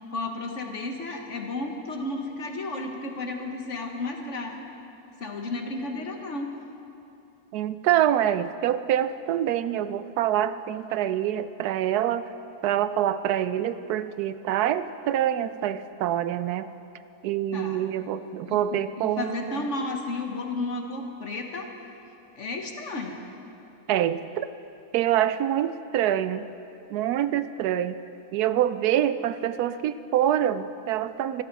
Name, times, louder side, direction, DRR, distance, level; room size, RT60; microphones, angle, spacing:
voice 1, 0.1-4.6 5.2-6.5 17.5-17.9 18.4-21.7 22.4-23.2, left 2 dB, 50° left, 3 dB, 1.6 m, -33 dB
voice 2, 7.5-12.3 12.6-16.7 17.2-19.6 23.9-24.5 24.9-26.5 26.9-28.0 28.3-31.4, right 11 dB, 85° right, 13 dB, 1.1 m, -26 dB
25.0 x 13.0 x 4.1 m, 2.8 s
omnidirectional pair, 1.6 m